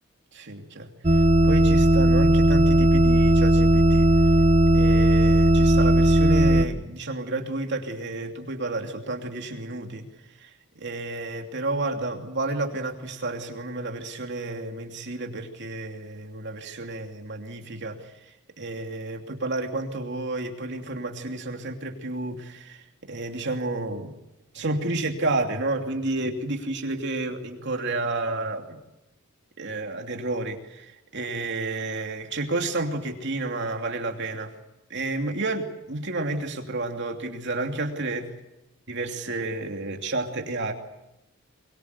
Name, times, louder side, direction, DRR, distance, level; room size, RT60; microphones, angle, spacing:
voice 1, 0.3-4.1 4.7-10.0 10.4-24.1 24.5-28.8 29.6-34.5 34.9-38.3 38.9-40.7, right 2 dB, 55° right, 3 dB, 2.8 m, -31 dB
sound 1, 1.0-6.6, right 1 dB, 30° right, 0.8 m, -17 dB
23.0 x 23.0 x 8.3 m, 0.92 s
head